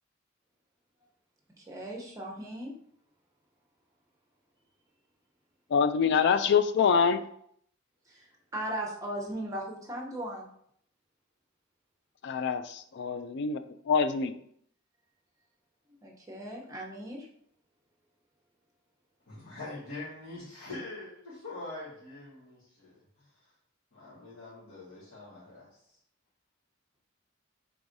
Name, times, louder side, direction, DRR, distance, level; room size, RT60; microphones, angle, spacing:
voice 1, 1.6-2.7 8.1-10.5 16.0-17.3, right 1 dB, 15° right, -1 dB, 0.8 m, -38 dB
voice 2, 5.7-7.2 12.2-14.3, left 6 dB, 60° left, 11 dB, 0.3 m, -25 dB
voice 3, 19.3-23.3 23.9-26.0, left 2 dB, 80° left, -12 dB, 1.7 m, -44 dB
4.6 x 3.6 x 2.7 m, 0.68 s
head